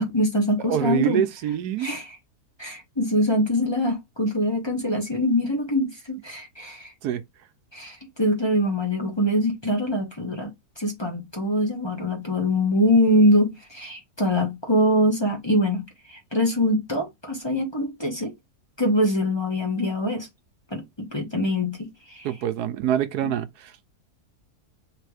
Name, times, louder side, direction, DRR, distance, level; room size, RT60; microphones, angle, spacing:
voice 1, 0.0-1.2 1.8-2.1 2.6-6.9 7.7-10.5 10.8-18.3 18.8-20.3 20.7-22.3 23.2-23.3, left 1 dB, 20° left, 1.2 m, -23 dB
voice 2, 0.6-1.9 7.0-7.2 22.2-23.7, right 10 dB, 80° right, 1.2 m, -25 dB
3.4 x 3.2 x 4.8 m
omnidirectional pair, 1.7 m